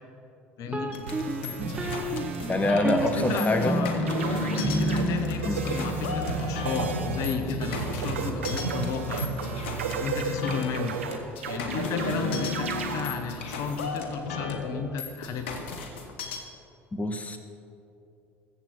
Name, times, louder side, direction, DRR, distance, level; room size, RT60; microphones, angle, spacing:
voice 1, 0.6-0.9 3.0-4.0 4.5-9.3 10.0-11.0 11.4-15.5, left 6 dB, 55° left, 8 dB, 1.2 m, -33 dB
sound 1, 0.7-10.5, right 1 dB, 15° right, 1.1 m, -32 dB
sound 2, 0.9-16.4, left 4 dB, 75° left, 1.3 m, -35 dB
sound 3, 1.1-2.7 3.0-3.8 4.1-5.0 5.4-13.0, right 4 dB, 85° right, 1.0 m, -33 dB
voice 2, 2.5-3.8 5.5-5.6 16.9-17.4, left 2 dB, 20° left, 8 dB, 1.1 m, -25 dB
21.0 x 7.9 x 4.4 m, 2.6 s
hypercardioid pair, 65°, 7 cm